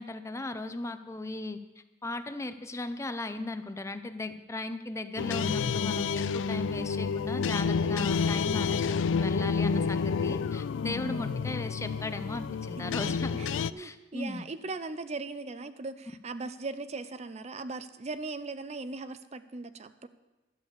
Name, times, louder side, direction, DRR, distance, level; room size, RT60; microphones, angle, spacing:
voice 1, 0.0-1.6 2.0-14.5, left 2 dB, 15° left, 10 dB, 0.5 m, -37 dB
sound 1, 5.2-13.7, left 5 dB, 90° left, 0.3 m, -29 dB
voice 2, 11.0-11.5 13.4-20.1, right 3 dB, 35° right, 12 dB, 0.5 m, -39 dB
12.0 x 6.8 x 8.0 m, 1.1 s
head